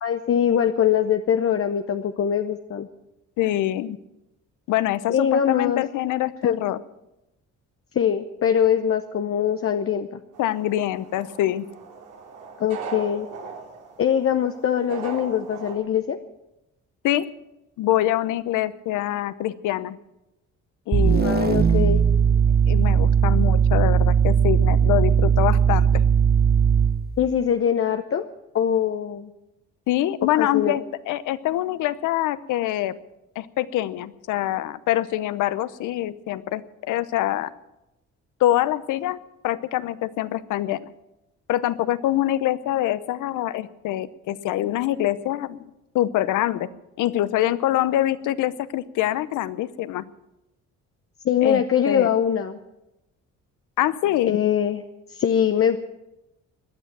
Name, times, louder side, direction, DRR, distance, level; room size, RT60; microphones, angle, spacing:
voice 1, 0.0-2.9 5.1-5.8 6.4-6.6 7.9-10.2 12.6-13.3 14.0-16.2 21.2-22.1 27.2-28.2 28.5-29.3 30.3-30.8 51.2-52.6 54.3-54.8 55.1-55.8, left 8 dB, 50° left, 7 dB, 0.9 m, -22 dB
voice 2, 3.4-4.0 4.7-6.8 10.4-11.7 17.0-17.2 17.8-20.0 20.9-21.5 22.7-26.0 29.9-32.9 33.4-37.5 38.4-39.2 39.4-40.9 41.5-45.6 45.9-46.7 47.0-50.0 51.4-52.1 53.8-54.4, left 13 dB, 90° left, 16 dB, 0.8 m, -25 dB
sound 1, 10.3-15.7, right 5 dB, 85° right, 3.1 m, -39 dB
sound 2, 20.9-27.1, right 7 dB, 30° right, 1.0 m, -18 dB
17.5 x 10.5 x 7.4 m, 0.92 s
cardioid pair, 90°, 30 cm